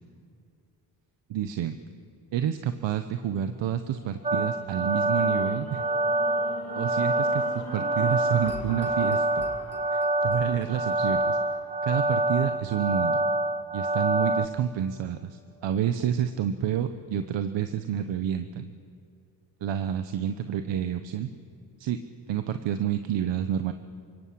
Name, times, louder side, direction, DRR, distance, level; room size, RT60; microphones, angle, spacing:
voice 1, 1.3-1.8 2.3-5.8 6.7-9.4 9.9-11.4 11.8-13.2 13.7-18.7 19.6-21.3 21.8-23.7, right 10 dB, 75° right, 9 dB, 1.2 m, -29 dB
sound 1, 3.4-13.6 14.2-14.3, left 4 dB, 35° left, 2.6 m, -44 dB
sound 2, 4.2-14.5, right 2 dB, 15° right, 1.0 m, -26 dB
28.5 x 17.5 x 8.7 m, 2.6 s
cardioid pair, 90°, 44 cm